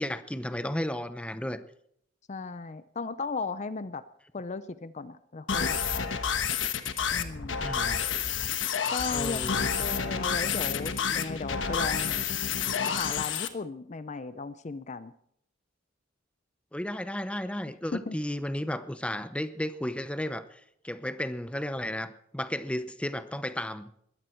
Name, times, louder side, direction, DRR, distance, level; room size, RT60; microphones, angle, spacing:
voice 1, 0.0-1.6 7.6-8.0 9.1-9.7 16.7-23.9, left 1 dB, 5° left, 11 dB, 0.8 m, -33 dB
voice 2, 2.3-4.0 4.3-6.2 7.1-7.6 8.9-12.1 12.8-15.1 17.9-18.2, left 4 dB, 40° left, 13 dB, 0.5 m, -36 dB
sound 1, 5.5-13.5, left 7 dB, 80° left, 1.3 m, -29 dB
20.5 x 14.0 x 4.5 m, 0.71 s
head